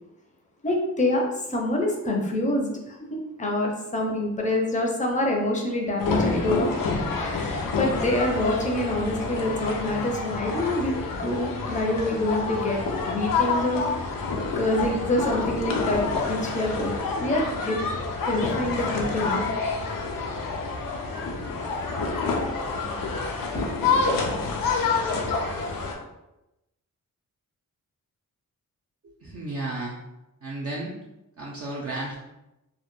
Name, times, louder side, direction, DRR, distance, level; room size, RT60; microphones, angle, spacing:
voice 1, 0.6-6.7 7.2-13.8 14.6-17.8 18.3-19.5, left 1 dB, 25° left, 0 dB, 0.5 m, -26 dB
sound 1, 6.0-25.9, left 4 dB, 85° left, 0.5 m, -28 dB
voice 2, 29.0-30.0 30.4-30.9 31.4-32.2, right 2 dB, 45° right, -3 dB, 0.4 m, -33 dB
2.1 x 2.1 x 3.0 m, 0.93 s
wide cardioid pair, 100°, 33 cm